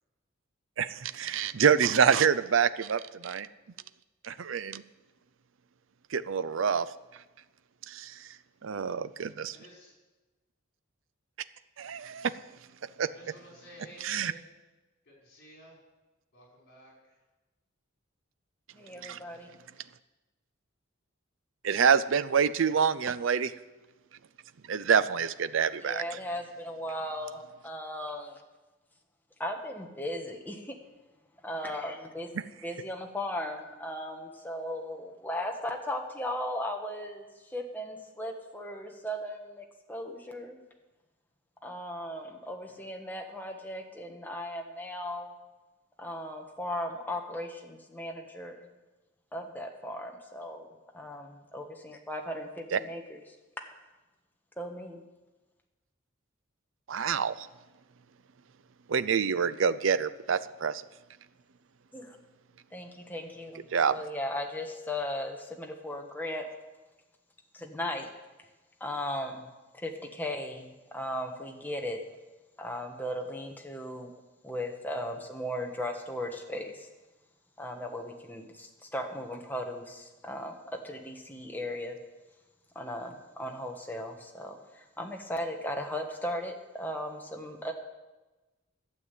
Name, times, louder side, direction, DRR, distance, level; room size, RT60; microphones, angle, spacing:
voice 1, 0.8-3.5 4.2-4.8 6.1-6.9 7.9-8.3 8.7-9.5 11.8-12.3 13.0-13.1 14.0-14.3 19.0-19.2 21.6-23.5 24.7-26.0 52.7-52.8 56.9-57.5 58.9-60.8 63.7-63.9, right 7 dB, 65° right, 14 dB, 0.5 m, -26 dB
voice 2, 9.5-9.9 13.1-14.4 15.1-15.8 16.3-17.1, equal, 55° left, -2 dB, 5.1 m, -53 dB
voice 3, 18.7-19.5 25.8-28.4 29.4-30.7 31.4-32.3 32.6-40.6 41.6-45.3 46.0-48.6 49.3-50.7 50.9-53.2 54.6-55.0 61.9-62.2 62.7-66.4 67.5-68.1 68.8-72.0 72.6-74.1 74.4-76.9 77.6-82.0 82.7-87.7, left 1 dB, 10° left, 2 dB, 1.3 m, -37 dB
12.5 x 7.3 x 8.3 m, 1.1 s
head